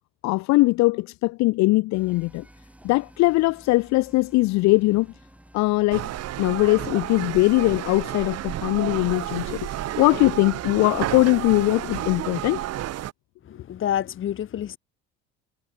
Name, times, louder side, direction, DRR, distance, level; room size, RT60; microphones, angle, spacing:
voice 1, 0.2-2.4 2.8-5.1 5.5-6.1 6.4-9.6 10.0-12.6, left 21 dB, 60° left, 0.6 m, -21 dB
sound 1, 1.9-12.3, right 1 dB, 5° right, 5.3 m, -52 dB
sound 2, 5.9-13.1, right 13 dB, 50° right, 1.3 m, -31 dB
voice 2, 13.5-14.8, left 10 dB, 40° left, 1.1 m, -28 dB
hypercardioid pair, 80°, 32 cm